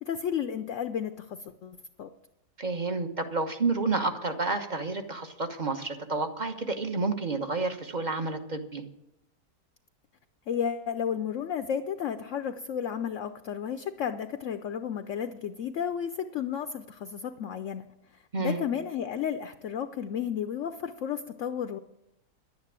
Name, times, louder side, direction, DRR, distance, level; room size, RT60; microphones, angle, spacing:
voice 1, 0.0-2.1 10.5-17.8 18.4-21.8, left 8 dB, 60° left, 9 dB, 0.9 m, -32 dB
voice 2, 2.6-8.8 18.3-18.6, right 3 dB, 30° right, 6 dB, 1.1 m, -30 dB
11.0 x 9.4 x 8.8 m, 0.85 s
omnidirectional pair, 1.7 m